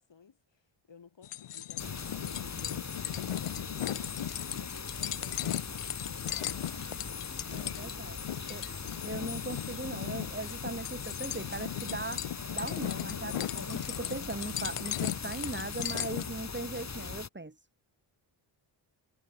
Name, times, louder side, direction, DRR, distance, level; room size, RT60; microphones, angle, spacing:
voice 1, 0.0-8.8, left 6 dB, 60° left, 7.5 m, -58 dB
sound 1, 1.2-16.3, left 11 dB, 90° left, 1.6 m, -37 dB
sound 2, 1.8-17.3, left 5 dB, 35° left, 1.7 m, -40 dB
voice 2, 7.5-8.2 8.5-8.6 9.0-17.7, right 2 dB, 20° right, 4.7 m, -39 dB
cardioid pair, 70°, 50 cm